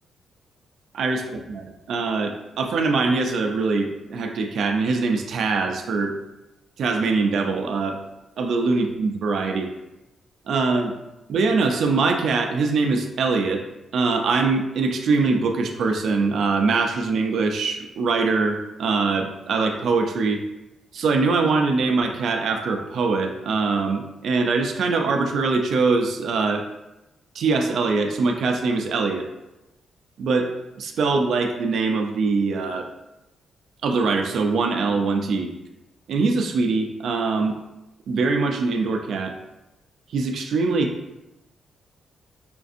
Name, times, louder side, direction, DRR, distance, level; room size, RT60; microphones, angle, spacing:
voice 1, 0.9-6.1 6.8-8.0 8.4-9.7 10.5-10.9 11.3-13.6 13.9-20.4 20.9-26.7 27.3-29.3 30.2-30.5 30.8-32.9 33.8-35.5 36.1-37.6 38.1-39.4 40.1-40.9, right 4 dB, 70° right, 4 dB, 0.4 m, -23 dB
5.0 x 2.5 x 2.5 m, 0.95 s
cardioid pair, 135°, 0 cm